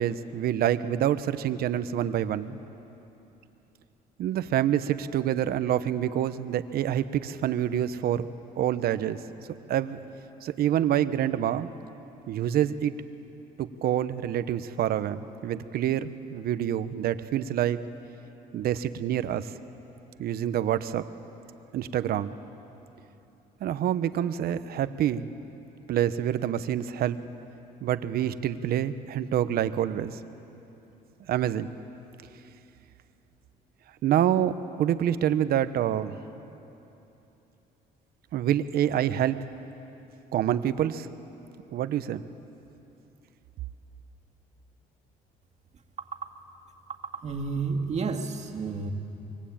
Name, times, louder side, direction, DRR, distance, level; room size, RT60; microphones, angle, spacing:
voice 1, 0.0-2.6 4.2-8.3 8.6-9.2 9.7-10.0 10.4-11.7 12.3-12.9 13.6-17.8 18.5-19.5 20.2-21.0 21.7-22.4 23.6-25.3 25.9-27.2 27.8-30.2 31.3-31.7 34.0-36.2 38.3-39.5 40.3-41.1 41.7-42.2, right 10 dB, 65° right, 12 dB, 1.0 m, -27 dB
voice 2, 46.0-46.3 46.9-48.9, right 4 dB, 40° right, 3 dB, 2.3 m, -31 dB
25.5 x 23.5 x 8.8 m, 3.0 s
cardioid pair, 110°, 17 cm